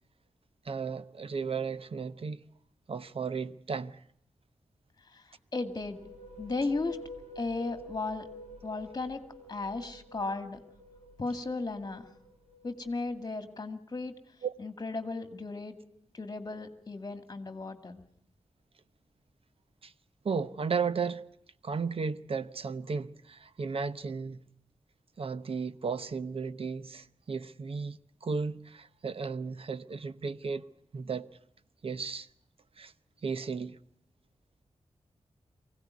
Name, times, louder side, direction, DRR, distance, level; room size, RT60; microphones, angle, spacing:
voice 1, 0.6-2.4 2.9-4.0 14.4-14.5 19.8-19.9 20.2-21.2 21.6-24.4 25.2-30.7 30.9-31.3 31.8-32.3 32.8-32.9 33.2-33.8, right 5 dB, 55° right, 0.9 m, -34 dB
voice 2, 5.5-6.0 6.4-7.0 7.4-8.3 8.6-9.2 9.5-10.6 11.2-12.0 12.6-14.1 14.6-15.8 16.1-18.0, left 3 dB, 35° left, 2.1 m, -35 dB
sound 1, 5.6-13.2, left 3 dB, 90° right, 6.6 m, -49 dB
24.0 x 17.0 x 9.5 m
wide cardioid pair, 130°, 12 cm